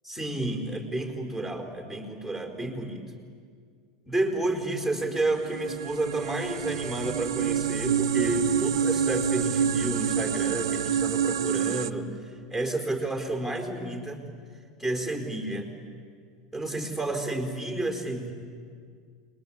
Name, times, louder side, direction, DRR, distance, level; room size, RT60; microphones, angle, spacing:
voice 1, 0.1-3.0 4.1-14.2 14.8-15.7 16.5-18.3, right 2 dB, 5° left, 3 dB, 4.4 m, -30 dB
sound 1, 5.1-11.9, right 8 dB, 80° right, 0.8 m, -27 dB
30.0 x 21.0 x 8.7 m, 2.1 s
hypercardioid pair, 90°, 2 cm